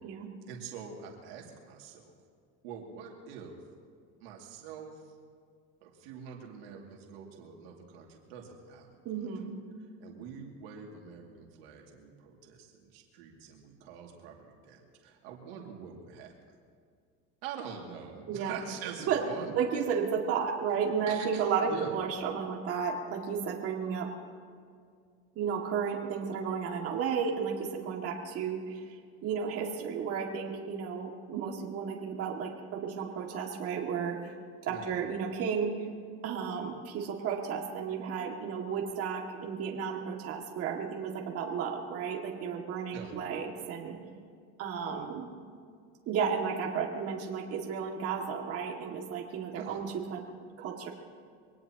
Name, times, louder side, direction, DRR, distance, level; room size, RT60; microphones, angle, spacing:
voice 1, 0.5-2.1 2.6-3.6 4.2-5.0 5.8-9.0 10.0-16.3 17.4-19.5 21.1-22.0 34.6-34.9 42.9-43.1 49.5-49.8, right 7 dB, 90° right, 0 dB, 2.6 m, -45 dB
voice 2, 9.1-9.5 18.3-18.6 19.1-19.2 19.5-24.1 25.4-28.6 29.2-34.2 34.7-35.7 36.2-44.0 44.6-45.3 46.1-50.2 50.6-50.9, right 6 dB, 50° right, 0 dB, 2.3 m, -33 dB
24.0 x 18.5 x 3.0 m, 2.1 s
supercardioid pair, 120°, 29 cm